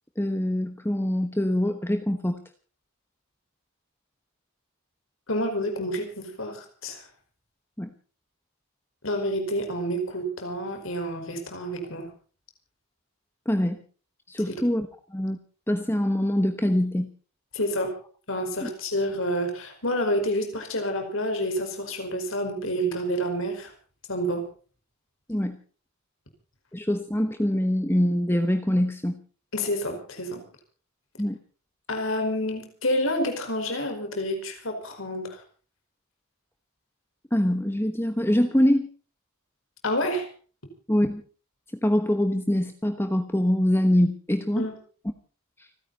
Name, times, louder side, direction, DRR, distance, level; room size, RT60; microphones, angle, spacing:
voice 1, 0.2-2.4 7.8-7.9 13.5-13.8 14.3-15.4 15.7-17.1 18.6-18.7 25.3-25.6 26.7-29.2 31.2-31.4 37.3-38.9 40.9-41.2 41.8-44.7 45.6-45.7, left 1 dB, 10° left, 7 dB, 1.1 m, -24 dB
voice 2, 5.3-7.0 9.0-12.1 14.5-14.6 17.5-17.9 18.3-23.7 24.1-24.4 29.5-30.4 31.9-35.4 39.8-40.3 44.6-44.7, equal, 60° left, 5 dB, 5.1 m, -28 dB
30.0 x 10.0 x 4.1 m, 0.40 s
head